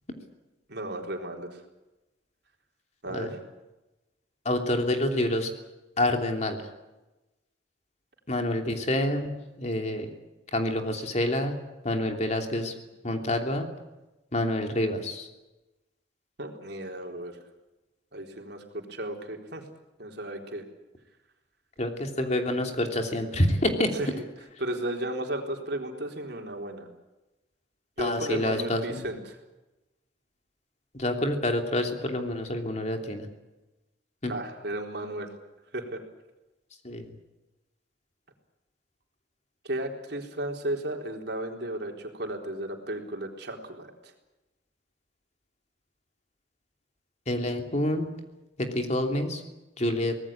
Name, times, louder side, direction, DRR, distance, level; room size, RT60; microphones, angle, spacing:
voice 1, 0.7-1.6 3.0-3.4 16.4-17.4 18.1-19.6 20.0-20.6 23.9-24.3 24.6-26.9 28.0-29.4 34.2-35.3 35.7-36.0 39.6-44.1, right 1 dB, 60° right, 2 dB, 3.9 m, -34 dB
voice 2, 4.4-5.5 6.0-6.6 8.3-9.3 9.6-10.1 10.5-11.5 11.8-12.7 13.0-13.7 14.3-15.3 21.8-23.9 28.0-29.0 30.9-33.3 34.2-34.3 36.8-37.0 47.3-48.1 48.6-49.4 49.8-50.2, left 1 dB, 40° left, 4 dB, 3.0 m, -27 dB
24.5 x 19.0 x 8.8 m, 1.0 s
head